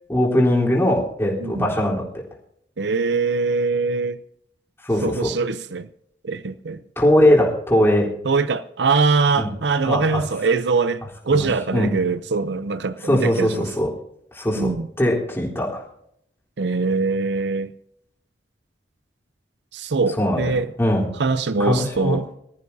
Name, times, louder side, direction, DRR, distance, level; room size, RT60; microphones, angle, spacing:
voice 1, 0.1-2.0 4.8-5.3 7.0-8.1 9.4-9.5 9.8-10.2 11.3-12.0 13.1-13.9 14.3-15.8 20.2-20.4 20.8-21.1 21.6-22.2, left 1 dB, 15° left, 3.7 m, -20 dB
voice 2, 2.8-4.2 5.0-5.9 6.2-6.8 8.2-13.6 14.6-14.9 16.6-17.7 19.7-20.7 21.2-22.3, right 4 dB, 80° right, 0.6 m, -22 dB
24.0 x 14.0 x 2.7 m
head